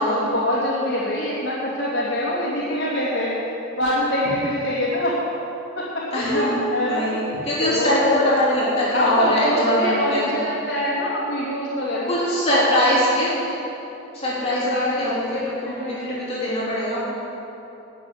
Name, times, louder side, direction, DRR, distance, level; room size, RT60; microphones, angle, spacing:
voice 1, 0.0-5.2 5.7-7.3 7.6-8.0 8.9-12.1 12.5-12.6 14.4-16.2, left 1 dB, 60° left, -8 dB, 2.6 m, -25 dB
voice 2, 6.1-10.3 12.1-13.6 14.1-17.0, left 1 dB, 30° left, -9 dB, 3.4 m, -22 dB
11.5 x 7.2 x 9.9 m, 2.9 s
head